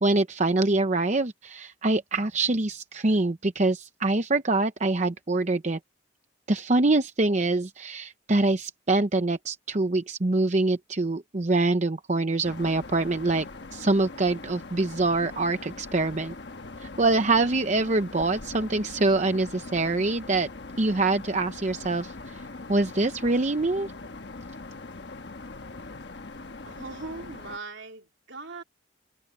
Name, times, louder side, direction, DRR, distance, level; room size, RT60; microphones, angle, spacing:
voice 1, 0.0-5.8 6.5-13.5 13.7-16.3 16.8-20.5 20.8-22.4 22.7-23.9, right 2 dB, 35° right, 0.8 m, -25 dB
sound 1, 12.4-27.6, left 3 dB, 60° left, 1.3 m, -41 dB
voice 2, 26.7-28.6, right 3 dB, 70° right, 3.4 m, -40 dB
head